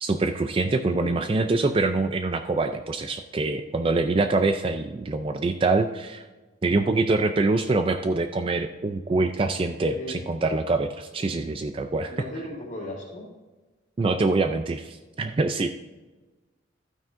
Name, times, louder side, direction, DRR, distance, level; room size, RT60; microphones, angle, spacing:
voice 1, 0.0-6.2 6.6-12.3 14.0-15.8, right 3 dB, 30° right, 7 dB, 0.3 m, -25 dB
voice 2, 0.8-1.2 9.9-10.2 12.1-13.3, left 1 dB, 40° left, -9 dB, 2.1 m, -36 dB
12.0 x 9.0 x 2.6 m, 1.2 s
head